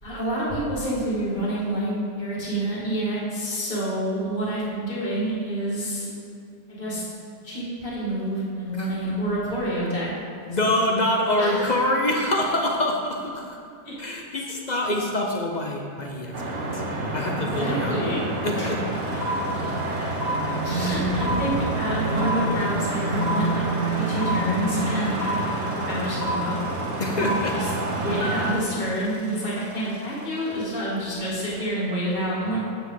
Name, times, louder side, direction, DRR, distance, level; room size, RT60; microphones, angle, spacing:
voice 1, 0.0-6.1 6.7-7.0 7.4-10.1 10.5-10.7 11.4-11.8 13.8-13.9 17.3-18.2 18.5-18.7 20.6-26.6 27.1-27.7 27.9-32.6, right 1 dB, 25° left, -8 dB, 2.3 m, -28 dB
voice 2, 10.5-13.6 14.0-16.8 17.1-18.2 18.4-18.8 27.0-27.6, left 1 dB, 45° left, 1 dB, 0.6 m, -25 dB
sound 1, 16.3-28.5, right 1 dB, 50° right, 1.2 m, -28 dB
sound 2, 18.6-18.7 18.9-30.0, equal, 80° left, 2.5 m, -32 dB
9.1 x 7.8 x 3.9 m, 2.5 s
omnidirectional pair, 1.8 m